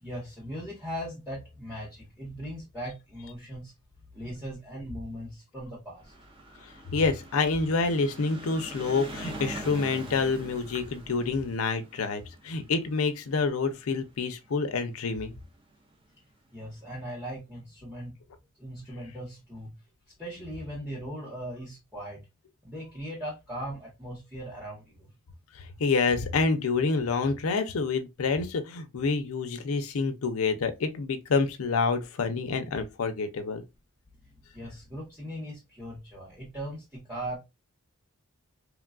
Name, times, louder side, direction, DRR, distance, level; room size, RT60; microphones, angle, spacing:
voice 1, 0.0-3.7 4.1-6.1 16.5-18.1 18.6-19.8 20.2-22.2 22.6-25.1 34.2-37.4, equal, 5° right, 0.8 m, -39 dB
sound 1, 6.0-14.5 15.3-15.4 15.6-15.7 15.9-16.0, right 1 dB, 25° right, 0.5 m, -43 dB
voice 2, 6.9-15.3 25.5-33.6, left 4 dB, 70° left, 0.5 m, -28 dB
3.1 x 2.2 x 2.3 m
head